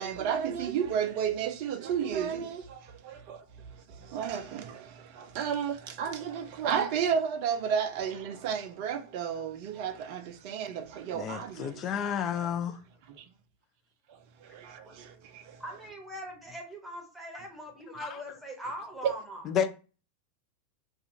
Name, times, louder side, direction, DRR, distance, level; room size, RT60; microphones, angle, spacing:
voice 1, 0.0-2.6 4.1-4.6 5.4-11.5 19.0-19.1, right 7 dB, 45° right, 0.4 m, -31 dB
voice 2, 11.1-12.8 18.0-18.2 19.5-19.7, left 8 dB, 30° left, 0.4 m, -31 dB
voice 3, 15.6-19.4, equal, 5° right, 1.0 m, -41 dB
2.4 x 2.3 x 2.8 m
figure-of-eight pair, 90°, 0 cm